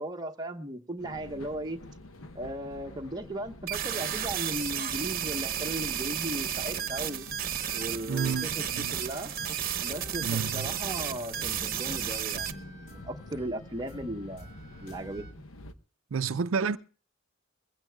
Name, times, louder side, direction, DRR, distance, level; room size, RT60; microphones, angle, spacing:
voice 1, 0.0-1.8 2.3-7.3 7.7-9.3 9.8-14.5 14.8-15.4, right 1 dB, 20° right, 1.0 m, -37 dB
sound 1, 1.0-15.7, left 2 dB, 80° left, 1.0 m, -48 dB
sound 2, 3.7-12.5, right 9 dB, 45° right, 1.0 m, -33 dB
sound 3, 7.5-15.3, equal, 40° left, 4.7 m, -51 dB
voice 2, 8.1-9.0 10.2-10.7 16.1-16.8, right 5 dB, 75° right, 0.5 m, -30 dB
22.0 x 16.0 x 2.3 m
head